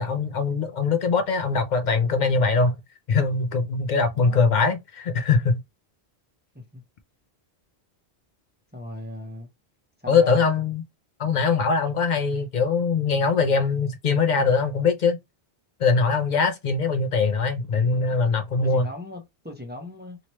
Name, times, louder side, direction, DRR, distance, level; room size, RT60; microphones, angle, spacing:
voice 1, 0.0-2.7 3.1-5.6 10.1-10.8 11.2-15.2 15.8-18.9, left 4 dB, 55° left, 0.5 m, -22 dB
voice 2, 4.1-4.4 6.5-6.8 8.7-9.5 10.0-10.4 17.7-18.2 18.6-20.2, left 2 dB, 10° right, 0.9 m, -38 dB
3.0 x 2.9 x 3.0 m
omnidirectional pair, 1.1 m